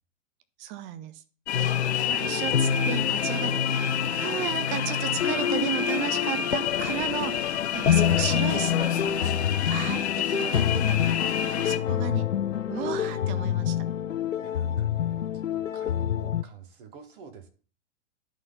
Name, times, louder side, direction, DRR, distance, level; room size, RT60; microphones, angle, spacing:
voice 1, 0.6-1.2 1.6-1.7 2.0-9.3 9.7-12.3 12.7-13.8, right 12 dB, 20° right, 12 dB, 0.5 m, -34 dB
sound 1, 1.5-16.4, left 9 dB, 90° left, 0.5 m, -27 dB
sound 2, 1.5-11.8, left 9 dB, 60° left, 0.8 m, -29 dB
voice 2, 14.4-17.5, right 7 dB, 45° right, 6 dB, 1.7 m, -49 dB
11.0 x 4.0 x 4.1 m, 0.41 s
figure-of-eight pair, 115°, 37 cm